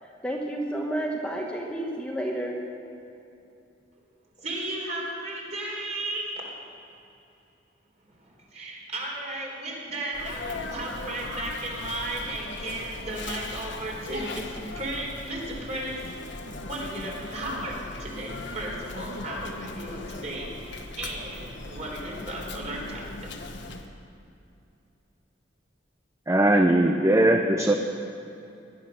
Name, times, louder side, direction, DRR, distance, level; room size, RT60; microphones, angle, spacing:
voice 1, 0.2-2.6, right 1 dB, 5° left, -1 dB, 1.2 m, -30 dB
voice 2, 4.4-6.3 8.2-15.9 16.6-23.3, right 1 dB, 35° right, -2 dB, 3.7 m, -35 dB
Sneeze, 10.1-23.9, left 2 dB, 70° left, 1.3 m, -38 dB
voice 3, 26.3-27.7, right 1 dB, 15° right, 4 dB, 0.6 m, -20 dB
18.5 x 11.5 x 6.4 m, 2.7 s
head